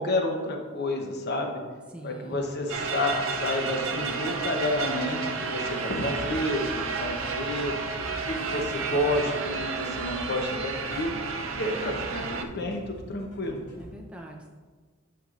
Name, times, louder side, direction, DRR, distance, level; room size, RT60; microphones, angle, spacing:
voice 1, 0.0-1.6 2.0-7.7 8.3-11.2 11.5-13.6, left 1 dB, 55° left, 3 dB, 0.9 m, -30 dB
voice 2, 1.9-2.6 8.5-9.6 13.8-14.5, right 1 dB, 5° right, 0 dB, 0.6 m, -44 dB
sound 1, 2.7-12.4, right 4 dB, 70° right, 0.6 m, -31 dB
sound 2, 6.2-13.9, equal, 35° left, 1.9 m, -45 dB
9.4 x 5.7 x 2.5 m, 1.4 s
head